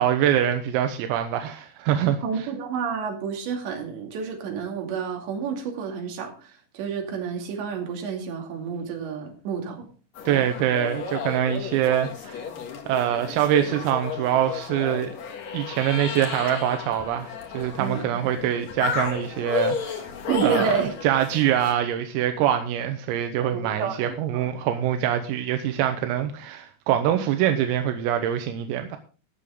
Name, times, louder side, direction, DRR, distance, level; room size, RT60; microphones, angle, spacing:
voice 1, 0.0-2.5 10.3-12.4 12.9-15.2 15.5-20.0 20.4-20.7 21.0-29.0, right 10 dB, 85° right, 6 dB, 3.7 m, -24 dB
voice 2, 2.2-9.9 10.3-10.5 17.8-18.1 20.3-20.9 23.5-24.5, right 6 dB, 60° right, 2 dB, 4.4 m, -29 dB
sound 1, 10.2-21.7, left 6 dB, 75° left, 1.6 m, -33 dB
20.0 x 6.9 x 3.7 m, 0.36 s
omnidirectional pair, 6.0 m